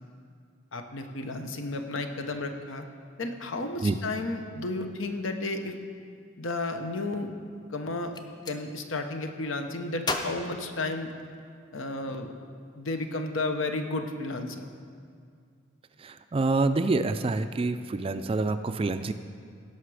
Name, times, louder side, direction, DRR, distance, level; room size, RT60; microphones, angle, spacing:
voice 1, 0.7-2.9 3.2-5.8 6.4-7.3 7.7-8.1 8.5-11.1 11.7-12.3 12.8-14.7, left 2 dB, 80° left, 6 dB, 0.8 m, -32 dB
Gunshot gunfire, 8.1-8.6 10.0-11.5, left 2 dB, 20° left, 0.6 m, -35 dB
voice 2, 16.0-19.1, right 3 dB, 30° right, 10 dB, 0.3 m, -27 dB
17.5 x 5.8 x 4.9 m, 2.2 s
head